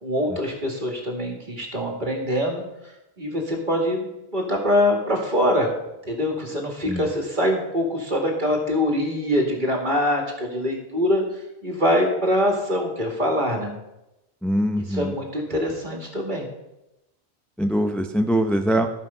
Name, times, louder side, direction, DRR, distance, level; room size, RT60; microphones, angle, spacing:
voice 1, 0.0-2.6 3.2-5.7 6.1-11.2 11.6-13.7 14.9-16.5, left 1 dB, 45° right, 1 dB, 2.2 m, -24 dB
voice 2, 14.4-15.1 17.6-18.9, right 1 dB, ahead, 6 dB, 0.5 m, -22 dB
14.0 x 5.6 x 5.5 m, 0.93 s
omnidirectional pair, 1.1 m